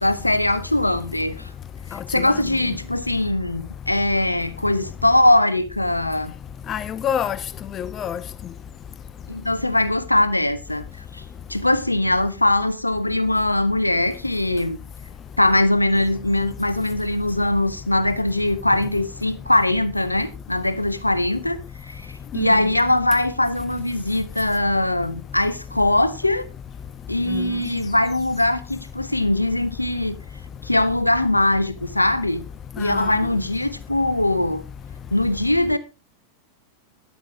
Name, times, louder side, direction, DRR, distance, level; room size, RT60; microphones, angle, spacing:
voice 1, 0.0-1.5 1.9-6.3 9.3-10.8 11.1-11.2 11.5-14.8 15.4-26.4 27.1-30.2 30.6-32.4 32.8-34.6 35.1-35.8, left 1 dB, 85° left, 1.0 m, -21 dB
voice 2, 1.9-2.4 6.7-7.4 7.7-8.2 22.3-22.7 27.3-27.5 32.8-33.1, left 9 dB, 30° left, 0.5 m, -28 dB
12.5 x 10.5 x 3.6 m
figure-of-eight pair, 90°, 0 cm